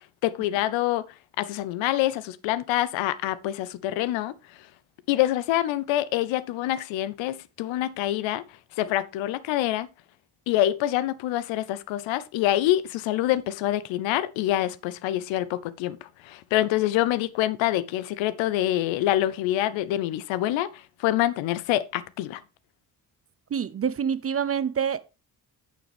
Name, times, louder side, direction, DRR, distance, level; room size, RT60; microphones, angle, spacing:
voice 1, 0.2-1.0 1.4-4.3 5.1-8.4 8.8-9.9 10.5-22.4, left 14 dB, 65° left, 0.8 m, -26 dB
voice 2, 23.5-25.0, right 7 dB, 30° right, 0.6 m, -26 dB
8.6 x 7.0 x 3.4 m
hypercardioid pair, 45°, 49 cm